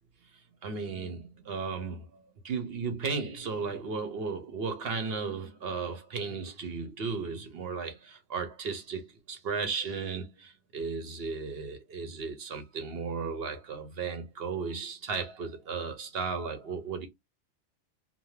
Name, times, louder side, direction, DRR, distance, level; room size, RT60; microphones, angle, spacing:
voice 1, 0.6-17.1, right 5 dB, 55° right, 0.8 m, -35 dB
2.6 x 2.1 x 3.1 m
omnidirectional pair, 1.4 m